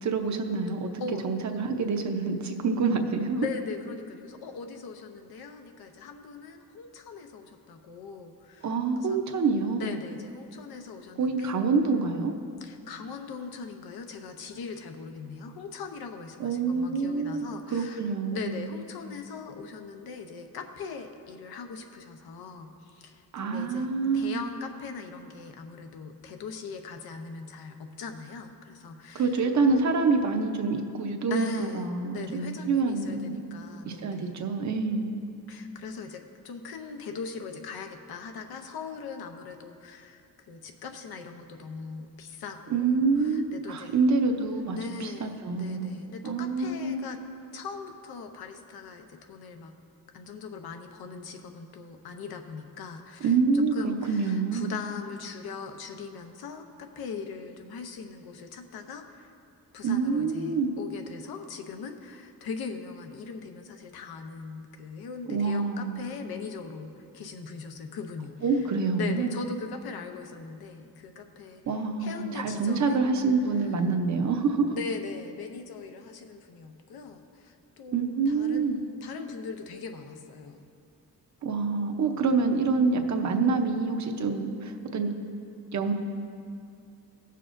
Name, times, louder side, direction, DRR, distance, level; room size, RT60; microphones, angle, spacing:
voice 1, 0.0-0.9 1.2-3.5 8.6-10.0 11.2-12.3 16.4-18.6 23.3-24.4 29.1-33.4 33.9-35.1 42.7-46.0 46.2-47.0 53.2-54.7 59.8-60.8 65.3-66.1 68.4-69.3 71.7-74.7 77.9-78.8 81.4-85.1 85.7-85.9, right 4 dB, 50° right, 5 dB, 0.7 m, -27 dB
voice 2, 3.3-9.2 9.7-11.6 12.6-23.9 24.1-29.4 31.3-34.3 35.5-44.0 44.7-47.2 47.5-49.7 50.1-59.3 59.7-68.7 68.9-71.6 72.0-73.0 73.6-73.7 74.7-80.7, left 5 dB, 90° left, 5 dB, 0.8 m, -40 dB
18.0 x 6.7 x 2.5 m, 2.5 s
wide cardioid pair, 150°, 36 cm